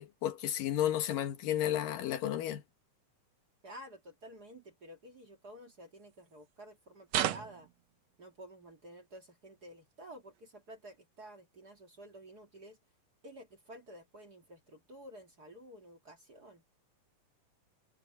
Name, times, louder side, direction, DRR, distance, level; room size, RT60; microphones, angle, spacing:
voice 1, 0.0-2.6, left 11 dB, 90° left, 3.2 m, -32 dB
voice 2, 3.6-7.7 8.2-12.8 13.2-16.6, right 1 dB, 35° right, 2.0 m, -52 dB
sound 1, 7.1-7.7 10.9-11.0, right 11 dB, 65° right, 1.8 m, -32 dB
omnidirectional pair, 3.8 m